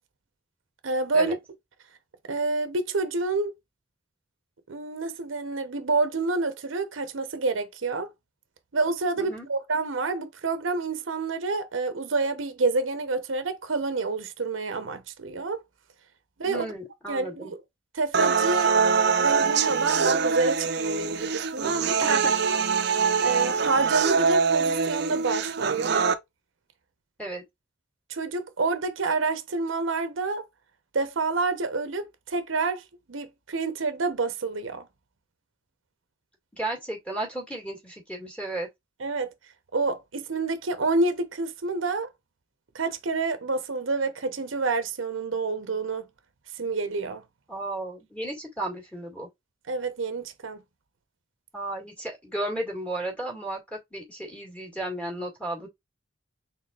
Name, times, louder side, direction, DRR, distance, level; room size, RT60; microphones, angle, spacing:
voice 1, 0.8-1.3 2.3-3.5 4.7-8.1 8.7-15.6 16.4-16.7 17.1-17.6 17.9-18.8 19.2-22.2 23.2-26.0 28.1-30.4 30.9-34.9 39.0-39.3 39.7-42.1 42.7-46.0 46.6-47.2 49.7-50.6, right 3 dB, 90° right, 0.9 m, -28 dB
voice 2, 9.2-9.5 16.4-17.5 22.0-22.3 27.2-27.4 36.5-38.7 47.5-49.3 51.5-55.7, right 1 dB, 5° left, 2.0 m, -34 dB
sound 1, 18.1-26.1, right 5 dB, 60° right, 0.6 m, -24 dB
4.2 x 3.8 x 2.4 m
head